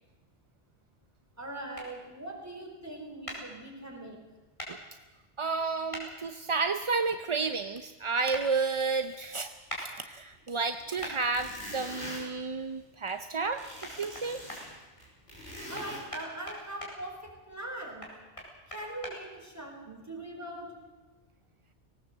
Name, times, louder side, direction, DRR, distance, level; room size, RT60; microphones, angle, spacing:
voice 1, 1.4-4.2 15.7-18.1 18.7-20.7, right 1 dB, 15° right, 0 dB, 4.3 m, -41 dB
sound 1, 1.7-1.9 3.3-3.4 4.6-4.7 5.9-6.1 8.3-8.5 9.7-9.8 11.0-11.2 13.4-13.5 13.8-14.6 15.7-16.9 18.0-19.1, equal, 25° left, 4.9 m, -40 dB
voice 2, 5.4-9.5 9.8-14.4, right 4 dB, 35° right, 8 dB, 0.5 m, -31 dB
sound 2, 8.8-8.9 9.2-9.3 10.3-10.4 10.8-13.1 13.5-16.0, equal, 70° left, 7.6 m, -43 dB
18.5 x 18.0 x 7.8 m, 1.2 s
omnidirectional pair, 1.2 m